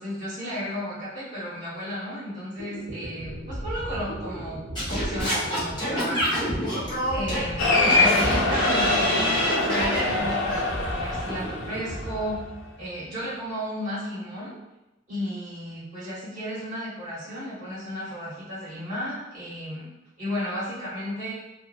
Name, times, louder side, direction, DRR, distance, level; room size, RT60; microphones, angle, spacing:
voice 1, 0.0-4.6 4.9-6.4 6.8-12.4 12.8-14.5 15.1-19.9 20.2-21.3, equal, 40° right, -9 dB, 1.1 m, -33 dB
sound 1, 2.6-13.1, right 1 dB, 75° right, 0.7 m, -36 dB
Singing / Scratching (performance technique), 4.8-10.1, equal, 20° left, 0.9 m, -27 dB
Cheering, 7.6-12.4, left 2 dB, 70° left, 0.5 m, -24 dB
2.6 x 2.1 x 2.3 m, 0.97 s
head